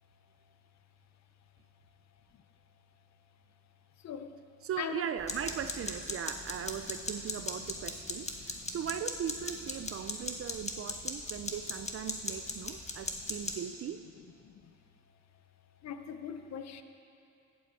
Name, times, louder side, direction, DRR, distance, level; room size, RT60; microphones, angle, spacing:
voice 1, 4.6-14.0, right 9 dB, 50° right, 10 dB, 0.5 m, -39 dB
sound 1, 5.2-13.6, left 2 dB, 20° left, 1.3 m, -39 dB
voice 2, 15.8-16.8, left 8 dB, 60° left, 9 dB, 0.8 m, -40 dB
15.0 x 8.6 x 4.6 m, 2.6 s
cardioid pair, 90°, 30 cm